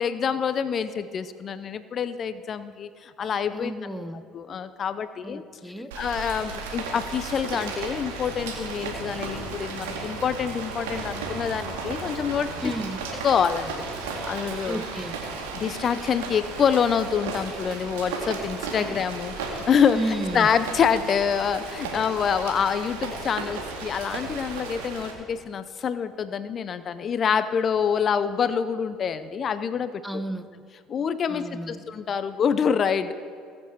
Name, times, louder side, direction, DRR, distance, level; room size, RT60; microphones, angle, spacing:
voice 1, 0.0-3.7 4.3-5.4 5.9-12.7 13.2-13.9 14.3-14.8 15.6-20.0 20.3-30.2 30.9-33.1, left 7 dB, 45° left, 13 dB, 0.6 m, -26 dB
voice 2, 3.5-4.2 5.2-5.9 12.6-13.0 14.6-15.1 18.8-19.0 19.9-20.5 30.0-30.5 31.3-31.8, equal, 5° left, 10 dB, 1.0 m, -32 dB
Rain, 5.9-25.1, right 4 dB, 75° right, 2.1 m, -35 dB
21.5 x 7.4 x 4.5 m, 2.3 s
hypercardioid pair, 60°, 0 cm